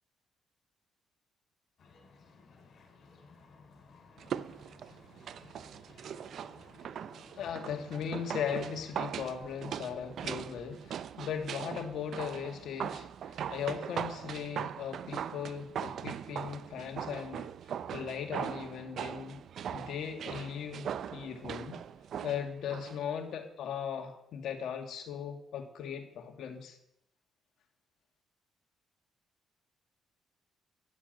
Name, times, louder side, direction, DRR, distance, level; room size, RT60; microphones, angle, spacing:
sound 1, 1.8-9.4, left 4 dB, 60° left, 4.1 m, -57 dB
sound 2, 4.2-23.0 23.3-23.4, right 9 dB, 65° right, 0.5 m, -40 dB
voice 1, 7.4-17.5 17.9-19.4 19.7-21.8 22.2-26.8, left 8 dB, 75° left, 4 dB, 2.0 m, -38 dB
11.5 x 7.3 x 9.0 m, 0.78 s
cardioid pair, 90°, 0 cm